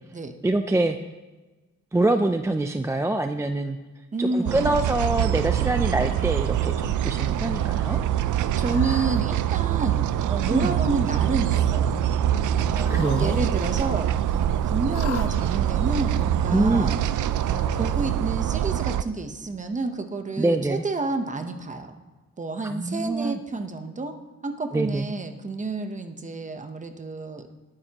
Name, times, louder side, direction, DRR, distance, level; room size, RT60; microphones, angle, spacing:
voice 1, 0.4-1.0 1.9-3.8 4.2-8.0 10.5-10.8 12.7-13.4 16.5-16.9 20.4-20.8 22.6-23.4 24.7-25.1, right 2 dB, 10° right, 7 dB, 0.3 m, -25 dB
voice 2, 4.1-4.7 8.6-12.0 12.6-17.0 17.5-22.0 22.4-27.5, right 3 dB, 25° right, 7 dB, 0.9 m, -30 dB
sound 1, 4.5-19.0, right 11 dB, 90° right, 0.5 m, -24 dB
Cat, 5.1-5.7 6.5-6.9 7.3-7.4 8.5-9.2 10.2-10.8 11.1-11.7 12.7-13.4 13.7-13.8 14.9-15.3 16.2-16.3 17.4-18.0, left 7 dB, 60° left, 0.9 m, -39 dB
18.5 x 9.7 x 2.9 m, 1.3 s
wide cardioid pair, 150°, 29 cm